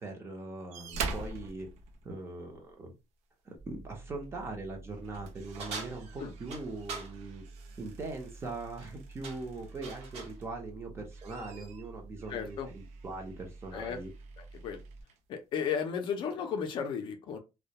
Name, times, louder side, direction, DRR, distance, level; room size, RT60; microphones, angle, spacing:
voice 1, 0.0-1.7 2.0-2.9 3.4-7.4 7.8-14.1, right 3 dB, 20° right, 0.6 m, -41 dB
sound 1, 0.7-2.7 4.2-4.4 4.8-10.6 11.0-15.2 16.1-16.2, right 4 dB, 80° right, 0.5 m, -45 dB
sound 2, 3.6-15.0, right 3 dB, 40° right, 1.2 m, -50 dB
sound 3, 5.6-7.1 8.6-8.9 9.2-10.4, right 4 dB, 60° right, 0.9 m, -43 dB
voice 2, 12.3-12.7 13.7-14.0 14.6-14.8 15.3-17.4, left 7 dB, 45° left, 0.4 m, -34 dB
2.2 x 2.1 x 2.8 m
cardioid pair, 160°, 11 cm